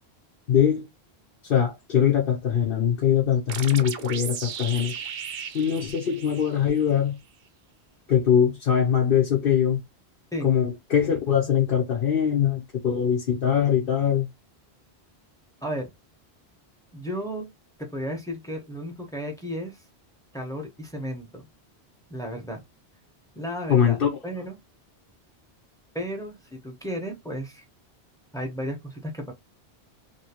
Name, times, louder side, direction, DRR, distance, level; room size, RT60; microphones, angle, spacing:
voice 1, 0.5-0.9 1.4-4.9 5.5-7.2 8.1-9.8 10.4-14.3 23.7-24.1, left 8 dB, 60° left, 1.0 m, -22 dB
sound 1, 3.5-7.0, right 8 dB, 65° right, 0.8 m, -36 dB
voice 2, 16.9-17.5 17.8-19.8 20.3-21.5 22.1-22.6 23.3-24.6 25.9-27.7 28.3-29.3, equal, 5° left, 1.0 m, -34 dB
2.9 x 2.8 x 2.9 m
omnidirectional pair, 1.1 m